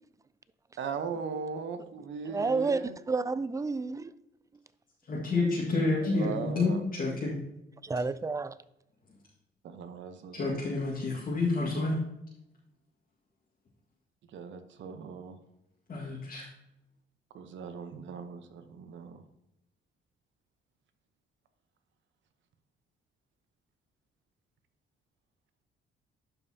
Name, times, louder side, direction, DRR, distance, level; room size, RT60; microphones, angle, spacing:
voice 1, 0.8-3.0 5.7-6.8 9.6-10.6 14.3-15.4 17.3-19.2, right 5 dB, 70° right, 8 dB, 0.9 m, -39 dB
voice 2, 2.3-4.1 7.8-8.6, right 4 dB, 15° right, 15 dB, 0.4 m, -30 dB
voice 3, 5.1-7.4 10.3-12.0 15.9-16.5, left 3 dB, 45° left, -6 dB, 1.9 m, -29 dB
12.0 x 5.4 x 2.8 m, 0.84 s
cardioid pair, 90°, 20 cm